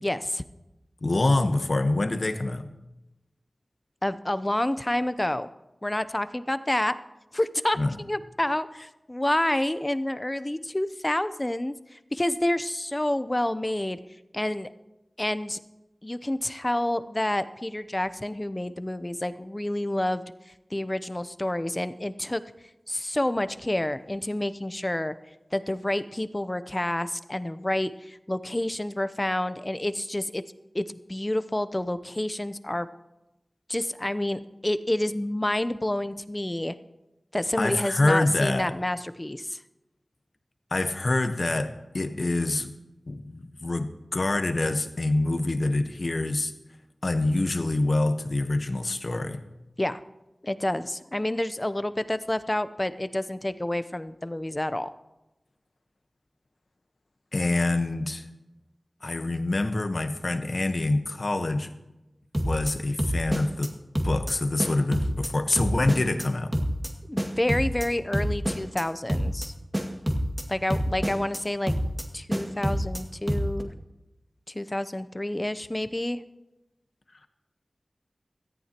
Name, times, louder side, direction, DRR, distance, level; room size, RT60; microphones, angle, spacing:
voice 1, 0.0-0.4 4.0-5.5 5.8-7.0 7.3-14.0 14.3-14.7 15.2-15.6 16.0-20.2 20.7-22.4 22.9-25.1 25.5-30.4 30.7-32.9 33.7-36.7 37.3-39.6 49.8-50.0 50.4-54.9 67.1-69.5 70.5-71.8 72.1-73.7 74.5-76.2, left 1 dB, 25° left, 13 dB, 0.7 m, -28 dB
voice 2, 1.0-2.7 7.8-7.9 37.6-38.7 40.7-42.7 43.1-46.5 47.0-49.4 57.3-58.3 59.0-61.7 62.4-63.7 64.0-66.5, left 2 dB, 60° left, 8 dB, 1.1 m, -26 dB
sound 1, 62.3-62.7 63.0-63.7 64.0-64.3 64.6-65.3 65.6-66.3 66.5-66.9 67.2-67.9 68.1-68.8 69.1-69.5 69.7-70.4 70.7-71.4 71.7-72.0 72.3-73.0 73.3-73.6, equal, 20° right, 2.0 m, -27 dB
17.5 x 14.0 x 3.0 m, 0.99 s
wide cardioid pair, 45°, 0 cm